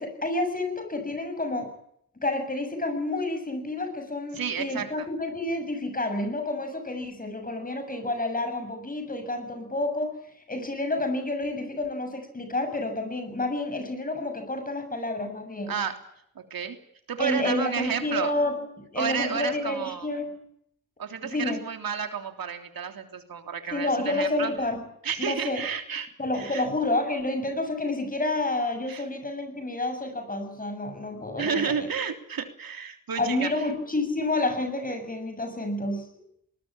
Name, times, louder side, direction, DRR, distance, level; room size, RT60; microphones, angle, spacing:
voice 1, 0.0-1.7 2.2-10.2 10.5-15.7 17.2-18.6 18.9-20.3 21.2-21.6 23.7-24.8 25.2-25.6 26.2-31.6 33.2-36.1, left 2 dB, 25° left, 7 dB, 7.2 m, -29 dB
voice 2, 4.3-5.1 15.7-16.0 16.3-16.8 17.1-18.3 19.0-20.1 21.0-24.5 25.0-26.7 28.9-29.0 31.4-33.5, right 6 dB, 85° right, 6 dB, 3.4 m, -31 dB
21.0 x 20.0 x 8.8 m, 0.70 s
wide cardioid pair, 155°, 34 cm